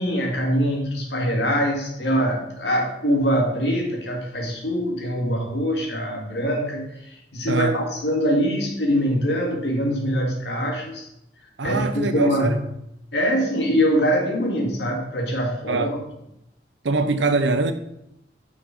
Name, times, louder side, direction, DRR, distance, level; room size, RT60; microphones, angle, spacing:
voice 1, 0.0-6.9 7.3-11.1 11.6-12.6 13.1-16.0, equal, 70° left, 1.9 m, -23 dB
voice 2, 7.5-7.8 11.6-12.6 15.7-15.9 16.8-17.7, right 3 dB, 85° right, 0.7 m, -23 dB
6.1 x 5.9 x 4.8 m
head